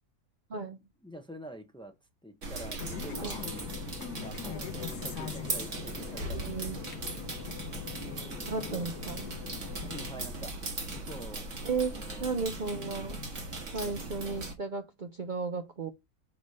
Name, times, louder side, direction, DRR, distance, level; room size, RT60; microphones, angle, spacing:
voice 1, 0.5-0.9 3.2-3.4 4.5-4.7 6.2-6.8 8.5-9.3 11.6-11.9 12.2-13.2 13.7-15.9, right 4 dB, 70° right, 0.4 m, -34 dB
voice 2, 1.0-1.9 2.2-3.8 4.2-6.4 8.0-8.4 8.7-8.9 9.8-11.5 11.9-12.4 13.8-14.0, right 1 dB, 5° left, 0.5 m, -46 dB
sound 1, 2.4-14.5, right 2 dB, 50° right, 1.8 m, -39 dB
sound 2, 2.8-10.1, left 9 dB, 85° left, 1.3 m, -42 dB
7.0 x 3.2 x 5.4 m
omnidirectional pair, 1.7 m